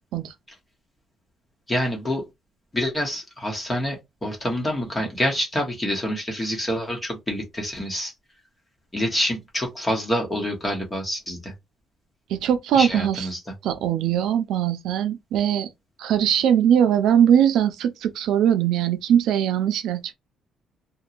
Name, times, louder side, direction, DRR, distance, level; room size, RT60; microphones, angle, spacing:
voice 1, 1.7-2.2 2.7-8.1 8.9-11.5 12.7-13.4, equal, 15° left, 0.9 m, -27 dB
voice 2, 12.3-13.3 13.6-15.7 16.0-20.1, right 9 dB, 80° right, 0.5 m, -21 dB
2.8 x 2.2 x 2.4 m
cardioid pair, 160°, 0 cm